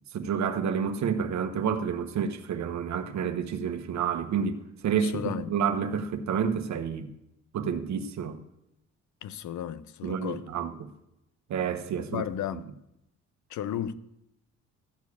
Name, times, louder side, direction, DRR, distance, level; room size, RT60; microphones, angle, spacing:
voice 1, 0.1-7.1 7.5-8.4 10.0-10.9 11.5-12.2, right 7 dB, 65° right, 1.2 m, -29 dB
voice 2, 5.0-5.5 9.2-10.4 12.1-12.6 13.5-13.9, left 10 dB, 70° left, 0.7 m, -34 dB
14.0 x 4.7 x 8.4 m
cardioid pair, 90°, 30 cm